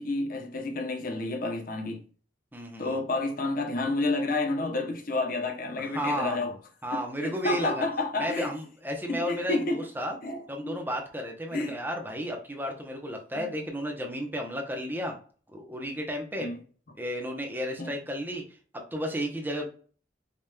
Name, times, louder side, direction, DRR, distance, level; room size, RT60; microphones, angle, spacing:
voice 1, 0.0-2.0 2.8-6.5 6.9-8.5 9.1-9.9 10.2-10.8 11.5-11.8 13.3-13.5 16.4-16.6 17.8-17.9, left 2 dB, 50° left, 0.8 m, -30 dB
voice 2, 2.5-3.0 5.8-6.6 6.8-7.8 8.2-10.2 10.5-15.2 15.5-16.5 17.0-18.4 18.7-19.7, equal, 10° right, 0.8 m, -33 dB
5.1 x 2.9 x 2.2 m
head